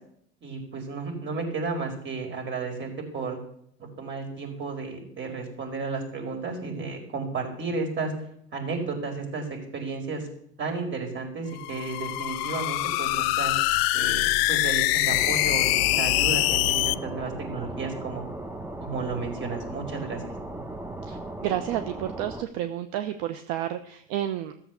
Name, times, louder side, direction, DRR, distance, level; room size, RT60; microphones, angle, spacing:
voice 1, 0.4-3.4 3.8-8.1 8.5-10.3 10.6-13.5 13.9-18.2 18.8-20.3, right 4 dB, 35° right, 2 dB, 4.8 m, -33 dB
sound 1, 11.5-16.9, left 18 dB, 70° left, 0.5 m, -24 dB
sound 2, 15.1-22.4, right 1 dB, 5° right, 1.0 m, -37 dB
voice 2, 21.0-24.5, right 12 dB, 65° right, 9 dB, 0.9 m, -31 dB
14.5 x 7.2 x 7.0 m, 0.69 s
hypercardioid pair, 90°, 31 cm